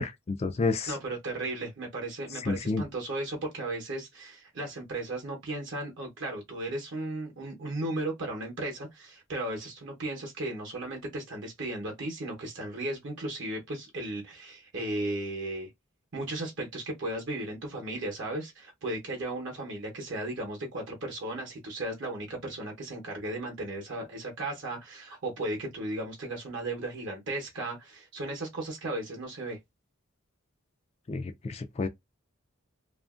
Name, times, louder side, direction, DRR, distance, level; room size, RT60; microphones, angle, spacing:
voice 1, 0.0-0.9 2.5-2.8 31.1-31.9, left 3 dB, 30° left, 0.3 m, -30 dB
voice 2, 0.9-15.7 16.1-29.6, right 2 dB, 60° right, 0.8 m, -35 dB
2.8 x 2.5 x 2.3 m
head